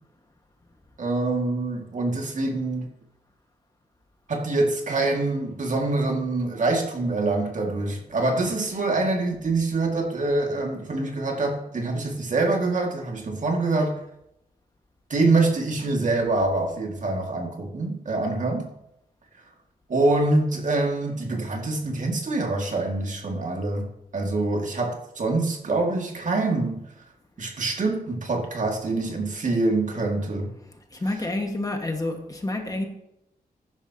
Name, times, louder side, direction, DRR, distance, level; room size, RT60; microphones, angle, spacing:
voice 1, 1.0-2.9 4.3-14.0 15.1-18.7 19.9-26.8 27.4-30.5, right 2 dB, 50° right, 2.2 m, -25 dB
voice 2, 31.0-32.8, left 2 dB, 20° left, 1.7 m, -28 dB
16.0 x 10.5 x 2.9 m
wide cardioid pair, 115°, 16 cm